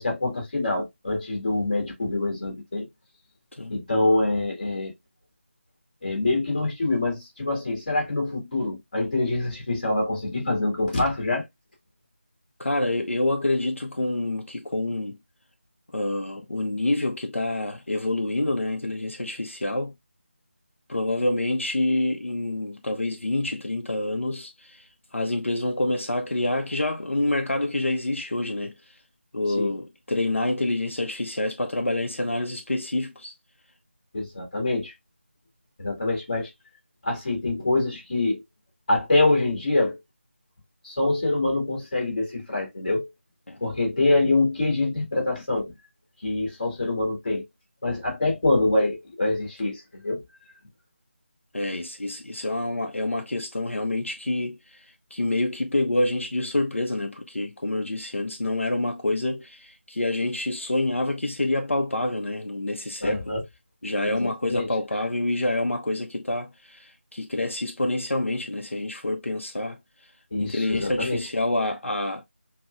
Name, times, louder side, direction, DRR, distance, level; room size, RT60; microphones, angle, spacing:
voice 1, 0.0-2.9 3.7-4.9 6.0-11.4 29.6-29.7 34.1-34.9 35.8-36.5 37.0-38.4 38.9-40.0 40.8-43.1 43.6-45.7 46.2-47.4 47.8-50.2 63.0-63.4 64.0-64.7 70.3-71.3, left 2 dB, 40° left, 1.8 m, -25 dB
voice 2, 12.6-15.2 15.9-19.9 20.9-28.7 29.3-33.3 43.5-43.6 51.5-63.2 63.8-69.8 70.4-72.2, left 2 dB, 80° left, 0.6 m, -27 dB
5.7 x 2.1 x 2.3 m
figure-of-eight pair, 165°, 7 cm